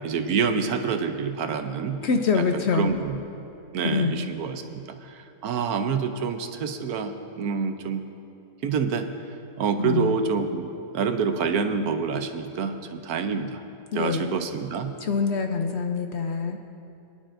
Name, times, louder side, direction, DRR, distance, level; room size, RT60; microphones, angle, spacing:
voice 1, 0.0-2.0 2.3-3.2 3.7-8.0 8.6-9.1 9.6-10.7 10.9-13.6 13.9-14.9, right 6 dB, 85° right, 7 dB, 1.2 m, -27 dB
voice 2, 2.0-2.9 3.8-4.3 9.8-10.2 13.9-14.4 15.0-16.6, left 5 dB, 60° left, 5 dB, 0.8 m, -25 dB
23.0 x 10.5 x 2.6 m, 2.7 s
omnidirectional pair, 1.5 m